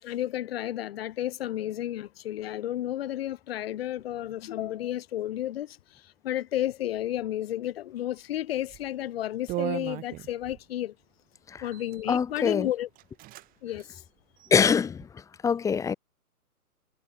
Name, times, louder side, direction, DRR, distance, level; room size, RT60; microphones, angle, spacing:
voice 1, 0.0-10.9 11.6-12.9 13.6-14.0, left 13 dB, 40° left, 5.9 m, -32 dB
sound 1, 8.7-8.9 9.5-10.6 11.6-12.0 12.6-12.7 13.0-13.5 13.7-13.9 14.4-15.1, right 18 dB, 20° right, 4.0 m, -36 dB
voice 2, 12.1-12.7 14.5-15.1 15.4-15.9, left 6 dB, 5° left, 1.7 m, -24 dB
hypercardioid pair, 150°, 46 cm